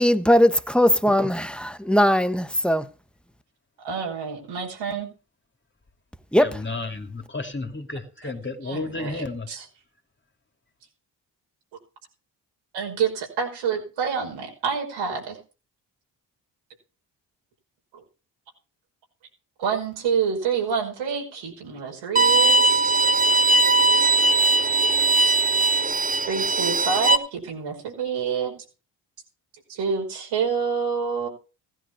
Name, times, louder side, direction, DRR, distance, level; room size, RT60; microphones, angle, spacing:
voice 1, 0.0-2.9 6.3-6.6, equal, ahead, 1.2 m, -20 dB
voice 2, 3.8-5.1 8.2-8.3 8.6-9.7 12.7-15.4 17.9-18.0 19.6-23.1 26.3-28.5 29.7-31.3, right 6 dB, 90° right, 5.4 m, -28 dB
voice 3, 6.4-9.5, left 3 dB, 25° left, 2.7 m, -32 dB
Bowed string instrument, 22.2-27.2, right 2 dB, 20° right, 1.2 m, -19 dB
15.5 x 11.0 x 4.5 m
supercardioid pair, 60°, 44 cm